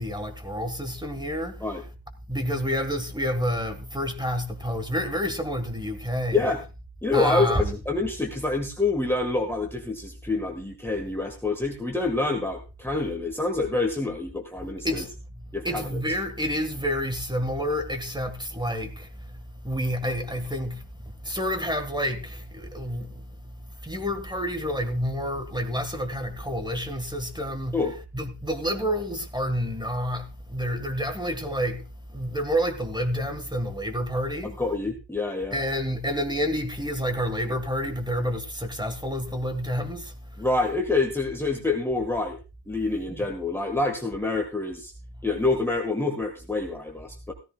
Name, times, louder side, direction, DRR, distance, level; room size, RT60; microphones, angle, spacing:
voice 1, 0.0-1.6 2.3-6.5 7.1-7.8 14.8-15.1 15.6-23.5 23.8-27.8 28.1-34.6 35.5-40.2 43.1-43.3, equal, 10° right, 1.6 m, -29 dB
voice 2, 7.0-15.0 15.5-16.0 27.7-27.9 34.4-35.6 40.4-42.4 42.7-44.9 45.2-47.3, left 3 dB, 5° left, 1.6 m, -27 dB
16.5 x 14.0 x 2.3 m
wide cardioid pair, 130°, 43 cm